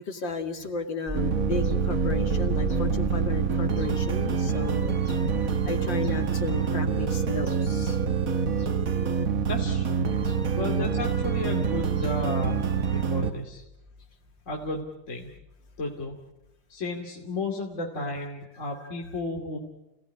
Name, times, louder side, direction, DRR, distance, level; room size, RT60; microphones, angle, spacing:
voice 1, 0.0-5.2 5.6-8.0 8.6-8.7 10.2-10.7, left 3 dB, 70° left, 4 dB, 3.0 m, -34 dB
sound 1, 1.1-13.3, right 6 dB, 50° right, 1.6 m, -26 dB
voice 2, 9.5-10.1 10.6-13.6 14.5-15.3 15.8-16.2 16.7-19.6, left 2 dB, 40° left, 0 dB, 2.9 m, -33 dB
sound 2, 13.5-14.9 15.2-16.1, equal, 20° right, 1.0 m, -38 dB
29.5 x 18.0 x 9.9 m, 0.91 s
omnidirectional pair, 2.1 m